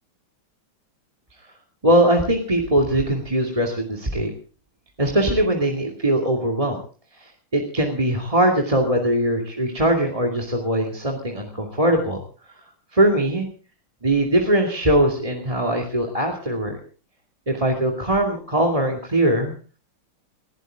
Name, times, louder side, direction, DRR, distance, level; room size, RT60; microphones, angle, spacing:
voice 1, 1.8-4.3 5.0-6.8 7.2-12.2 12.9-13.5 14.0-16.8 17.5-19.5, right 1 dB, 15° right, 2 dB, 2.4 m, -21 dB
20.0 x 16.5 x 3.7 m, 0.40 s
omnidirectional pair, 2.3 m